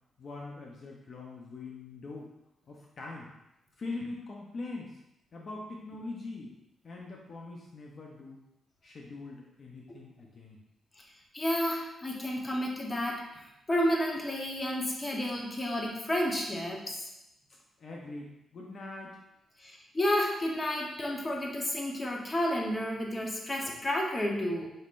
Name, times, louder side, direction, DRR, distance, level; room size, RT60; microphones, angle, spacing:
voice 1, 0.2-2.3 2.7-3.3 3.8-5.0 5.3-6.5 6.8-8.4 8.8-10.6 17.8-19.2, left 3 dB, 50° left, -1 dB, 0.6 m, -42 dB
voice 2, 11.3-17.1 19.6-24.7, left 1 dB, 20° left, -1 dB, 0.9 m, -31 dB
5.4 x 3.7 x 2.5 m, 0.88 s
cardioid pair, 95°, 0 cm